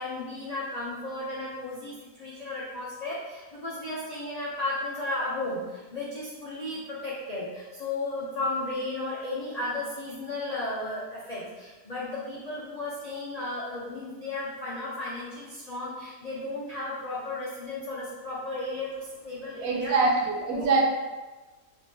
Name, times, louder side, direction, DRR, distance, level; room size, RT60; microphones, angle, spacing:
voice 1, 0.0-19.9 20.5-20.7, left 2 dB, 90° left, -7 dB, 0.3 m, -34 dB
voice 2, 19.6-20.8, right 3 dB, 80° right, -1 dB, 1.2 m, -24 dB
3.5 x 3.3 x 2.7 m, 1.2 s
omnidirectional pair, 1.6 m